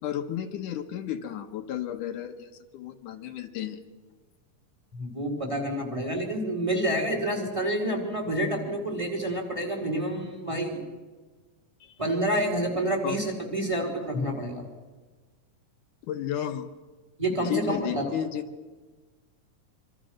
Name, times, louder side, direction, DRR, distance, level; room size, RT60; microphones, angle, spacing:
voice 1, 0.0-3.8 11.8-12.0 13.0-13.2 16.1-16.7 17.4-18.4, left 10 dB, 75° left, 6 dB, 2.7 m, -33 dB
voice 2, 5.0-10.8 12.0-14.6 17.2-18.0, right 1 dB, 10° right, 3 dB, 4.6 m, -28 dB
26.0 x 25.5 x 6.4 m, 1.3 s
omnidirectional pair, 3.7 m